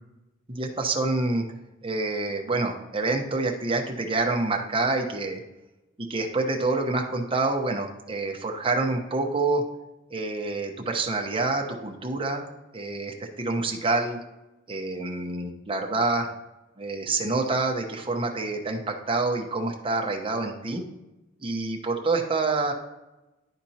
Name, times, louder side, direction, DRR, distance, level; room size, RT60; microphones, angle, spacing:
voice 1, 0.5-1.4 1.8-5.4 6.0-9.6 10.1-12.5 12.7-14.2 14.7-16.3 16.8-20.8 21.4-22.7, right 3 dB, 25° right, 2 dB, 1.0 m, -27 dB
11.5 x 4.3 x 2.9 m, 1.0 s
head